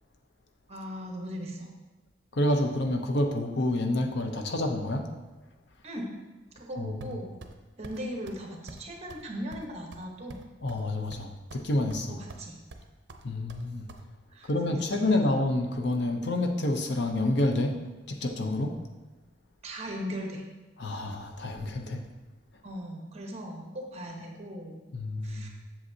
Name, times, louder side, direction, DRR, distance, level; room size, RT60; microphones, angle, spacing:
voice 1, 0.7-1.7 5.8-6.2 6.5-7.3 7.8-10.4 12.0-12.6 14.3-15.1 19.6-20.4 22.6-24.8 25.2-25.5, equal, 35° right, 1 dB, 1.1 m, -38 dB
voice 2, 2.3-5.1 6.8-7.0 10.6-12.2 13.2-13.9 14.4-17.8 18.1-18.7 20.8-22.0 24.9-25.5, left 1 dB, 65° left, 4 dB, 0.7 m, -28 dB
sound 1, 7.0-7.6 7.8-8.0 8.3-8.4 8.7-8.8 9.1-9.2 9.5-10.8 11.1-11.6 11.9-12.4 12.7-14.0, right 2 dB, 65° right, 0.6 m, -46 dB
7.8 x 7.0 x 2.8 m, 1.2 s
head